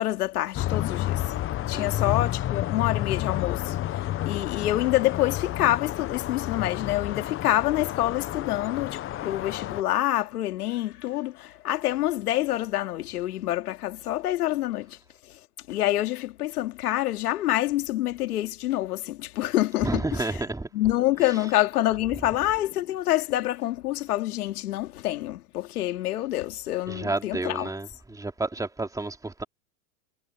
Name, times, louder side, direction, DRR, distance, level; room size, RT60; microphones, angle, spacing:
voice 1, 0.0-1.3 1.7-15.0 15.7-20.4 20.7-27.7, left 15 dB, 80° left, 2.6 m, -27 dB
sound 1, 0.5-9.8, left 13 dB, 30° left, 1.0 m, -30 dB
voice 2, 1.7-2.2 19.8-20.7 26.9-29.4, right 2 dB, 5° right, 2.8 m, -31 dB
hypercardioid pair, 115°, 45 cm